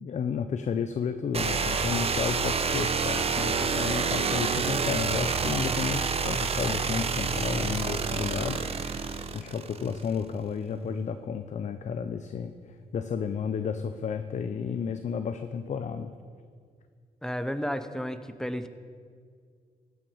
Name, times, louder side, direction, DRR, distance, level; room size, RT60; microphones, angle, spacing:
voice 1, 0.0-8.7 9.3-12.5 12.9-16.1, left 6 dB, 50° left, 9 dB, 0.5 m, -32 dB
sound 1, 1.3-10.1, right 5 dB, 40° right, 0.7 m, -28 dB
voice 2, 17.2-18.7, equal, 5° left, 10 dB, 0.7 m, -32 dB
15.5 x 5.9 x 5.5 m, 2.1 s
cardioid pair, 80°, 15 cm